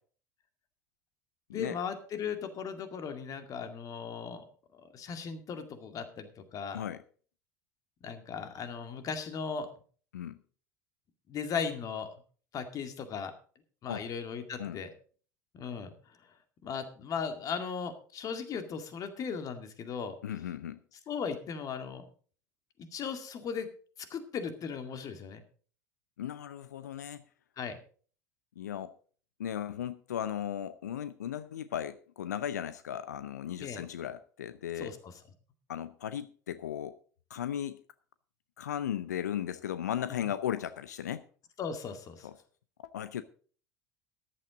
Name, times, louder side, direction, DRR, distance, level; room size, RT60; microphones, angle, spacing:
voice 1, 1.5-4.4 4.7-6.8 8.0-9.7 11.3-12.1 12.5-13.3 13.8-14.9 15.5-15.9 16.6-20.1 21.1-22.0 22.9-23.7 24.1-25.4 27.6-27.8 33.6-33.8 34.8-35.0 40.1-40.2 41.6-42.3, left 6 dB, 40° left, 8 dB, 2.2 m, -37 dB
voice 2, 20.2-20.8 26.2-27.2 28.6-28.9 29.4-34.9 35.7-37.0 37.3-37.8 38.6-41.2 42.2-42.3 42.8-43.2, left 10 dB, 75° left, 15 dB, 0.6 m, -36 dB
14.0 x 11.0 x 3.8 m, 0.42 s
figure-of-eight pair, 70°, 9 cm